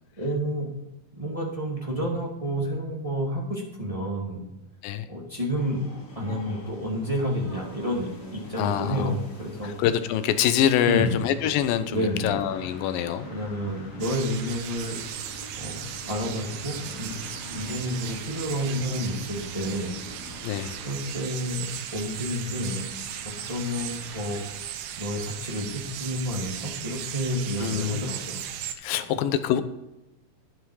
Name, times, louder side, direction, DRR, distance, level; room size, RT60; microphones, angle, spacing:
voice 1, 0.2-0.7 1.2-4.4 5.1-9.7 10.8-11.2 11.9-12.4 13.3-15.8 16.1-17.2 17.5-20.0 20.8-22.8 23.2-24.7 25.0-28.4 28.9-29.2, equal, 15° right, -2 dB, 1.6 m, -30 dB
sound 1, 5.5-21.0, left 1 dB, 25° left, 2.1 m, -46 dB
voice 2, 8.6-9.1 9.6-13.3 20.4-20.7 27.6-28.1 28.8-29.6, left 10 dB, 80° left, 11 dB, 2.5 m, -25 dB
sound 2, 12.3-24.6, left 1 dB, 60° left, 4.6 m, -47 dB
sound 3, 14.0-28.8, right 10 dB, 85° right, 2.7 m, -37 dB
11.5 x 9.3 x 4.8 m, 0.97 s
omnidirectional pair, 4.1 m